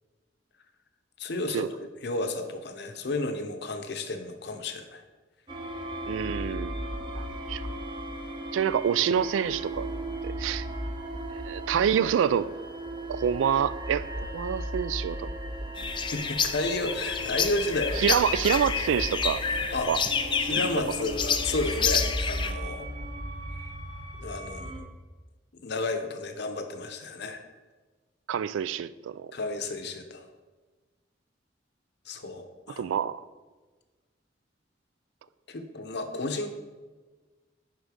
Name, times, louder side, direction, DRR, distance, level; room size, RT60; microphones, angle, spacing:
voice 1, 1.2-1.7 2.0-5.0 16.1-18.2 19.7-19.9 20.4-22.9 24.2-24.7 25.6-27.4 29.3-30.2 32.1-32.8 35.5-36.5, left 2 dB, 60° left, 7 dB, 0.7 m, -32 dB
sound 1, 5.5-24.8, right 1 dB, 25° right, 0.8 m, -36 dB
voice 2, 6.1-6.8 7.5-7.6 8.5-9.9 10.2-10.7 11.3-12.5 13.1-15.3 18.0-19.4 19.9-20.0 28.3-29.3 32.8-33.2, right 8 dB, 90° right, 16 dB, 0.3 m, -27 dB
sound 2, 15.8-22.5, left 6 dB, 25° left, 0.4 m, -29 dB
9.6 x 3.8 x 5.0 m, 1.3 s
head